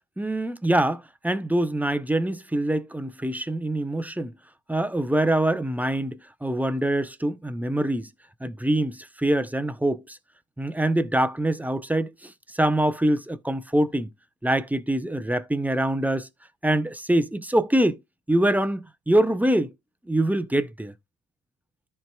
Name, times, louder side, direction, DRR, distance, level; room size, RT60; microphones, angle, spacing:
voice 1, 0.2-4.3 4.7-8.1 8.4-10.2 10.6-14.1 14.4-16.3 16.6-18.0 18.3-19.7 20.1-20.9, right 1 dB, 5° right, 0.7 m, -24 dB
13.5 x 4.5 x 2.3 m
cardioid pair, 90°, 30 cm